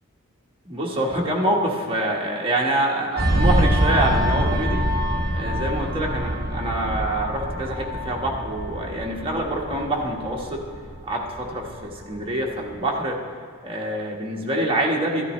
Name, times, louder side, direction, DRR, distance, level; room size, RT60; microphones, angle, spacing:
voice 1, 0.7-4.8 5.3-10.6 11.0-13.2 13.6-15.3, right 1 dB, 25° right, -2 dB, 1.3 m, -26 dB
sound 1, 3.2-12.2 12.6-12.8, equal, 50° right, 1.2 m, -25 dB
14.0 x 10.5 x 3.1 m, 2.2 s
head